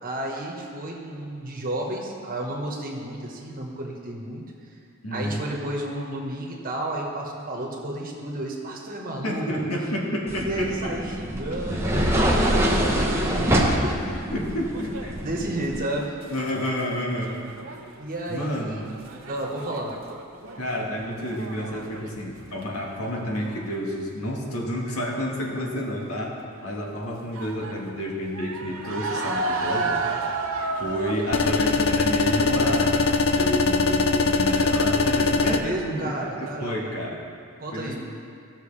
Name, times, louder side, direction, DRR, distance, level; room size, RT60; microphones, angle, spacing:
voice 1, 0.0-4.4 5.1-9.5 10.4-14.3 15.2-16.2 18.0-18.8 19.3-19.9 35.4-36.9 37.6-38.0, right 1 dB, 45° right, -1 dB, 1.4 m, -32 dB
voice 2, 5.0-5.5 9.2-10.9 11.7-12.3 14.3-15.1 16.3-17.4 18.3-18.9 20.6-30.0 30.8-37.2 37.7-38.0, equal, 85° left, -2 dB, 1.7 m, -30 dB
sound 1, 10.3-15.8, equal, 10° right, 1.0 m, -24 dB
sound 2, 14.4-16.8 17.1-22.1 22.4-22.9 23.3-23.8 25.6-25.8 26.3-26.4 27.3-32.2, right 3 dB, 70° right, 0.9 m, -33 dB
sound 3, 31.3-35.6, left 3 dB, 70° left, 0.6 m, -21 dB
16.0 x 6.4 x 3.4 m, 2.4 s
head